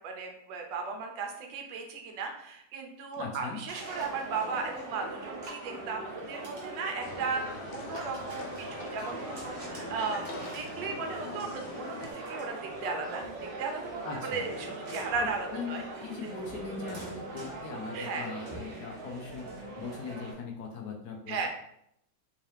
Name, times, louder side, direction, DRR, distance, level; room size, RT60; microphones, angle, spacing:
voice 1, 0.0-13.2 13.6-15.8 17.9-18.3 21.3-21.5, right 4 dB, 70° right, 3 dB, 1.3 m, -36 dB
voice 2, 3.2-3.6 14.0-14.5 15.2-21.5, left 5 dB, 70° left, 1 dB, 1.0 m, -40 dB
sound 1, 3.7-20.3, right 2 dB, 35° right, 0.9 m, -41 dB
sound 2, 7.0-12.1, left 3 dB, 85° left, 1.4 m, -43 dB
3.7 x 2.8 x 3.2 m, 0.75 s
omnidirectional pair, 2.1 m